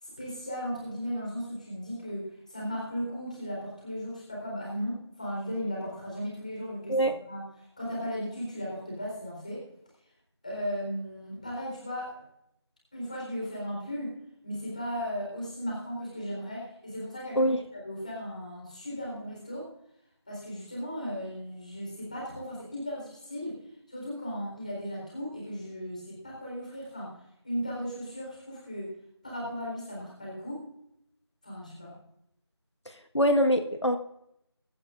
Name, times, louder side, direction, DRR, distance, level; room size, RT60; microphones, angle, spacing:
voice 1, 0.0-7.0 7.3-7.4 7.8-9.6 10.4-12.2 12.9-14.2 14.4-19.7 20.3-23.6 23.9-27.1 27.4-28.9 29.2-30.7 31.4-32.0, equal, 15° left, -4 dB, 3.9 m, -36 dB
voice 2, 32.9-34.0, equal, 85° left, 6 dB, 1.3 m, -24 dB
22.5 x 11.0 x 2.5 m, 0.79 s
figure-of-eight pair, 175°, 14 cm